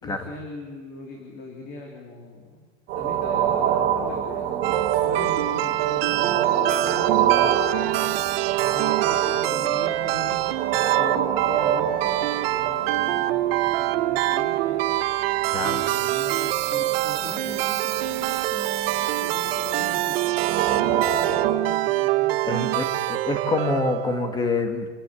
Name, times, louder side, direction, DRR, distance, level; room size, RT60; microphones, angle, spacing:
voice 1, 0.0-2.7 2.9-4.6 5.0-8.1 8.7-10.7 11.0-14.9 15.6-20.3 20.7-22.9, left 2 dB, 25° left, 0 dB, 3.4 m, -40 dB
sound 1, 2.9-21.5, right 9 dB, 30° right, 3.5 m, -27 dB
sound 2, 4.6-24.5, right 16 dB, 55° right, 1.0 m, -25 dB
voice 2, 22.5-24.9, left 3 dB, 10° left, 7 dB, 1.8 m, -26 dB
28.0 x 15.5 x 8.8 m, 1.5 s
supercardioid pair, 175°, 36 cm